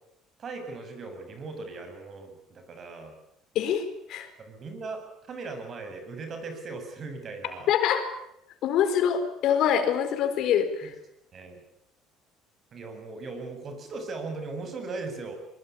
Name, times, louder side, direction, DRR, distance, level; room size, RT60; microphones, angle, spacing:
voice 1, 0.4-3.1 4.4-7.7 10.8-10.9 11.3-11.6 12.7-15.4, right 3 dB, 40° right, 6 dB, 8.0 m, -38 dB
voice 2, 3.5-4.3 7.7-8.1 8.6-10.9, left 8 dB, 65° left, 9 dB, 4.5 m, -25 dB
23.0 x 22.5 x 8.7 m, 0.81 s
cardioid pair, 120°, 0 cm